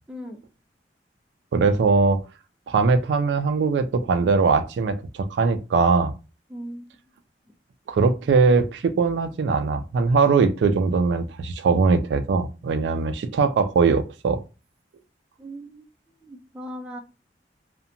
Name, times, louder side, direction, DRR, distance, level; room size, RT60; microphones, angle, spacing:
voice 1, 0.1-0.4 6.5-6.9 15.4-15.9 16.2-17.0, equal, 5° right, 0.4 m, -38 dB
voice 2, 1.5-2.2 2.7-6.1 7.9-14.4, right 4 dB, 80° right, 0.3 m, -21 dB
2.7 x 2.1 x 2.6 m
head